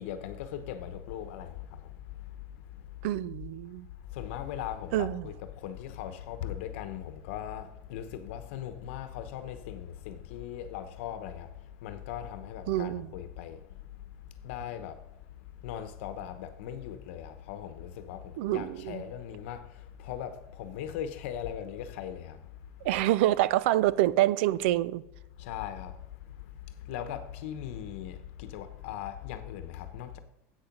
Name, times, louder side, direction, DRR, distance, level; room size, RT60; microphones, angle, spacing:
voice 1, 0.0-3.2 4.0-22.6 22.9-23.0 25.4-30.2, left 10 dB, 65° left, 1.0 m, -40 dB
voice 2, 3.0-3.9 4.9-5.2 12.7-13.1 18.4-19.0 22.8-25.0, right 14 dB, 60° right, 0.5 m, -26 dB
10.5 x 8.1 x 5.4 m
supercardioid pair, 175°, 7 cm